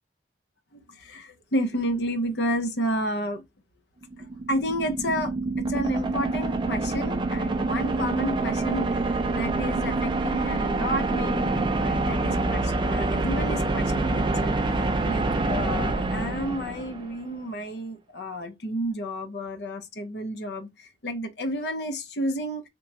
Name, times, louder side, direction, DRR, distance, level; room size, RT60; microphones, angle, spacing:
voice 1, 1.0-3.4 4.5-5.3 5.6-8.9 9.3-14.6 15.0-22.6, equal, 65° left, 0.7 m, -31 dB
sound 1, 4.0-17.2, right 2 dB, 25° right, 0.4 m, -26 dB
2.9 x 2.2 x 3.8 m
head